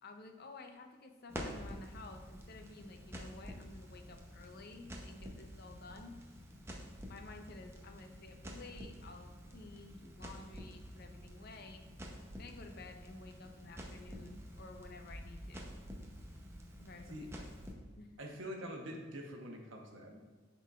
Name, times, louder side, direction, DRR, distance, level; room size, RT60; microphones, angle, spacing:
voice 1, 0.0-6.2 7.1-11.8 12.4-15.7 16.8-17.5 18.0-18.3, left 3 dB, 55° left, 5 dB, 0.6 m, -53 dB
Crackle, 1.3-17.7, equal, 15° right, 0.7 m, -49 dB
voice 2, 18.2-20.2, equal, 80° right, 1 dB, 1.0 m, -45 dB
11.5 x 3.9 x 2.4 m, 1.4 s
head